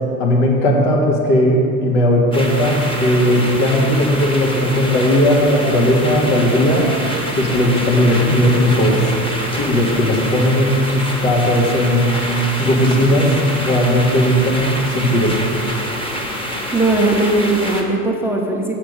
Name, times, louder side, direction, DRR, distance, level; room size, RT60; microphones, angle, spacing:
voice 1, 0.2-6.8 7.4-9.0 9.6-12.1 12.5-13.3 13.5-15.3, equal, 75° left, -1 dB, 2.0 m, -16 dB
sound 1, 2.3-17.8, equal, 10° left, 1.1 m, -26 dB
voice 2, 16.7-18.8, right 2 dB, 5° right, 0 dB, 0.6 m, -18 dB
7.2 x 6.6 x 5.3 m, 2.6 s
hypercardioid pair, 105°, 44 cm